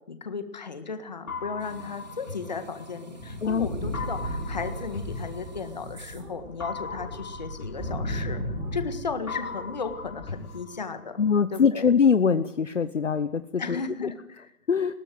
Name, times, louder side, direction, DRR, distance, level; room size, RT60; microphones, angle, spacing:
voice 1, 0.1-11.2 11.5-11.9 13.6-14.5, left 5 dB, 30° left, 9 dB, 1.7 m, -35 dB
sound 1, 1.3-3.3 3.9-6.0 6.6-8.9 9.3-11.3, left 5 dB, 70° left, 4.0 m, -39 dB
sound 2, 1.6-6.5, right 1 dB, 30° right, 2.5 m, -48 dB
sound 3, 3.2-9.1 9.4-10.3, equal, 10° right, 3.8 m, -35 dB
voice 2, 11.2-13.8 14.7-14.9, left 6 dB, 55° left, 12 dB, 0.9 m, -22 dB
21.0 x 18.0 x 7.8 m, 0.80 s
hypercardioid pair, 180°, 44 cm